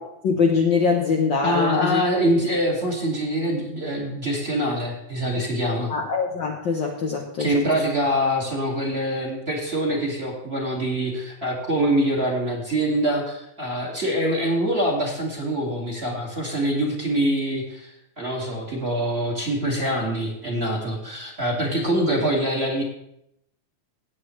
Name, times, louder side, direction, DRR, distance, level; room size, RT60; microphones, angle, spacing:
voice 1, 0.0-2.0 5.4-5.5 5.9-7.5 21.9-22.0, left 5 dB, 80° left, 1 dB, 1.0 m, -23 dB
voice 2, 1.4-5.9 7.4-22.8, right 1 dB, 25° right, -2 dB, 1.9 m, -24 dB
17.5 x 8.0 x 3.1 m, 0.79 s
omnidirectional pair, 3.4 m